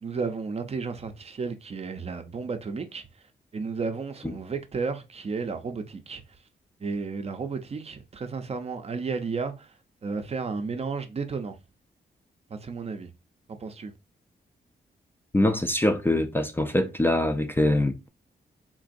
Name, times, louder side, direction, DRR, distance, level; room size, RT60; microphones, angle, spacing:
voice 1, 0.0-3.1 3.5-6.2 6.8-11.6 12.5-13.1 13.5-13.9, right 4 dB, 40° right, 0.5 m, -33 dB
voice 2, 15.3-18.1, left 1 dB, 15° left, 0.4 m, -23 dB
3.8 x 2.5 x 2.5 m
cardioid pair, 100°, 17 cm